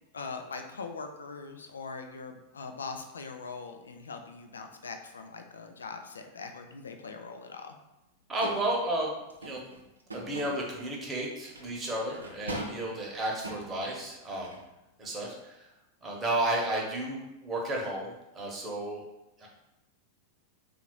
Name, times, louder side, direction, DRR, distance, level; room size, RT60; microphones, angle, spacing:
voice 1, 0.1-7.8, left 4 dB, 70° left, 6 dB, 0.4 m, -41 dB
voice 2, 8.3-9.2 9.4-9.6 10.1-14.5 15.0-15.6 16.0-19.0 19.4-19.5, right 1 dB, 20° right, -2 dB, 1.0 m, -32 dB
sound 1, 8.4-8.7 9.3-10.6 11.5-11.7 12.1-12.9 13.4-14.0 14.4-14.7, right 1 dB, 80° right, 0.6 m, -40 dB
3.8 x 2.5 x 4.5 m, 0.96 s
figure-of-eight pair, 90°, 0 cm